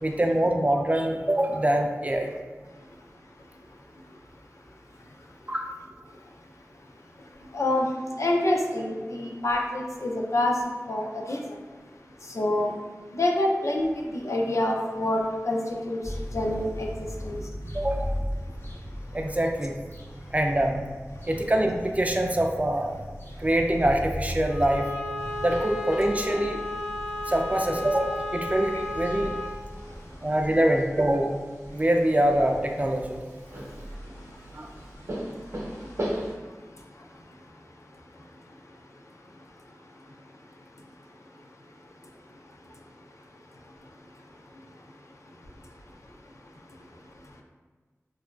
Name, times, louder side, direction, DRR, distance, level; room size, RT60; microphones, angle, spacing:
voice 1, 0.0-2.3 5.5-5.7 17.7-18.1 19.1-19.8 20.3-20.8 21.3-23.0 23.4-24.9 25.4-26.6 27.3-29.3 30.2-31.3 31.7-33.2 33.5-33.7 34.5-34.7, right 1 dB, 25° right, 2 dB, 0.3 m, -24 dB
voice 2, 7.5-7.9 8.2-10.6 10.9-11.4 12.3-12.7 13.1-16.0 16.3-17.4, left 1 dB, 65° left, 0 dB, 0.4 m, -26 dB
sound 1, 16.0-30.6, equal, 45° left, 0.8 m, -38 dB
Bowed string instrument, 24.4-29.6, left 1 dB, 85° left, 1.1 m, -33 dB
sound 2, 25.2-36.3, right 1 dB, 65° right, 0.7 m, -40 dB
2.9 x 2.4 x 2.3 m, 1.4 s
wide cardioid pair, 40°, 5 cm